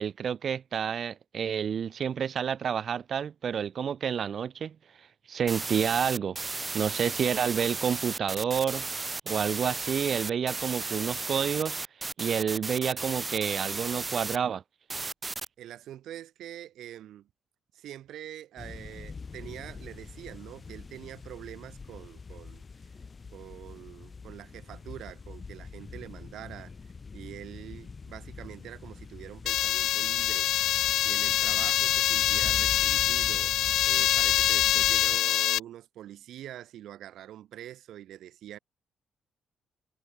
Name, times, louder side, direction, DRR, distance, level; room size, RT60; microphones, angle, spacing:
voice 1, 0.0-6.4 6.7-8.9 9.3-14.6, right 7 dB, 55° right, 1.3 m, -29 dB
sound 1, 5.5-14.4 14.9-15.5, right 3 dB, 25° right, 0.6 m, -34 dB
voice 2, 15.6-17.3 17.7-22.6 23.3-26.7 27.1-30.5 31.0-33.5 33.8-38.6, right 12 dB, 80° right, 1.5 m, -44 dB
sound 2, 18.6-35.2, left 4 dB, 35° left, 2.1 m, -44 dB
sound 3, 29.5-35.6, left 13 dB, 80° left, 0.6 m, -25 dB
cardioid pair, 90°, 0 cm